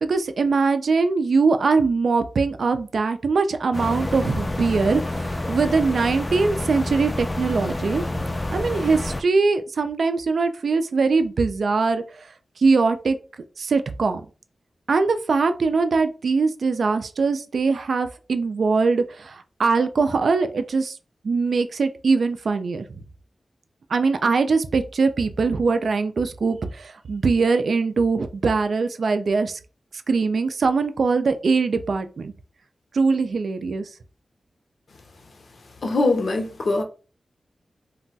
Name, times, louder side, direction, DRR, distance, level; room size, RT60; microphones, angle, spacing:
voice 1, 0.0-12.3 12.6-13.2 13.6-14.2 14.9-21.0 21.2-23.0 23.9-29.6 30.1-32.3 32.9-33.9, right 4 dB, 70° right, 0.3 m, -22 dB
sound 1, 3.7-9.2, left 2 dB, 25° left, 0.4 m, -28 dB
voice 2, 35.8-36.8, left 2 dB, 65° left, 0.7 m, -22 dB
2.3 x 2.2 x 3.9 m
wide cardioid pair, 85°, 0 cm